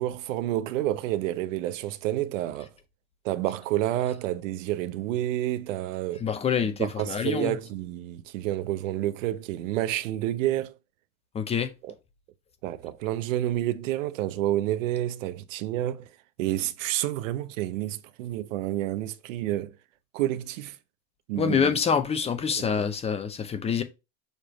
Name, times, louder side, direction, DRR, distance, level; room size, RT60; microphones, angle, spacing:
voice 1, 0.0-2.7 3.2-6.3 6.8-10.7 11.8-11.9 12.6-16.1 16.4-19.7 20.1-20.8 21.3-21.7 22.6-22.7, right 14 dB, 85° right, 0.8 m, -29 dB
voice 2, 6.2-7.6 11.3-11.7 21.3-23.8, left 6 dB, 15° left, 0.6 m, -26 dB
6.7 x 3.1 x 5.0 m
supercardioid pair, 145°, 37 cm